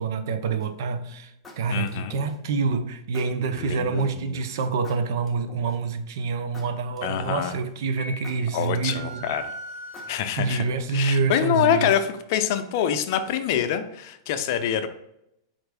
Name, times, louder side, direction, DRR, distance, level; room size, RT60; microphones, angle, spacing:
voice 1, 0.0-9.3 10.4-12.0, right 4 dB, 70° right, 0.5 m, -27 dB
sound 1, 0.6-0.9 1.4-2.6 3.1-4.1 4.8-6.0 6.5-7.7 8.2-9.4 9.9-11.1, left 2 dB, 10° left, 0.7 m, -48 dB
voice 2, 1.7-2.1 3.5-4.3 7.0-7.6 8.5-9.4 10.1-10.6 10.9-14.9, left 9 dB, 60° left, 0.4 m, -25 dB
Piano, 8.0-9.1, left 3 dB, 5° right, 1.5 m, -43 dB
sound 2, 8.8-10.6, right 2 dB, 45° right, 1.3 m, -39 dB
4.3 x 2.5 x 3.3 m
hypercardioid pair, 120°, 2 cm